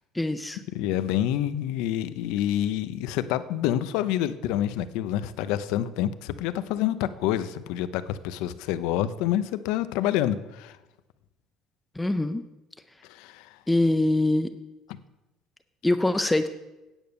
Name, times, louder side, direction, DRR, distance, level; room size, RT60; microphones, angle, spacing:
voice 1, 0.1-0.6 12.0-12.4 13.7-14.5 15.8-16.5, left 2 dB, 5° left, 0.4 m, -23 dB
voice 2, 0.7-10.8 13.1-13.6, left 12 dB, 85° left, 0.6 m, -27 dB
9.0 x 7.9 x 6.9 m
cardioid pair, 165°, 0 cm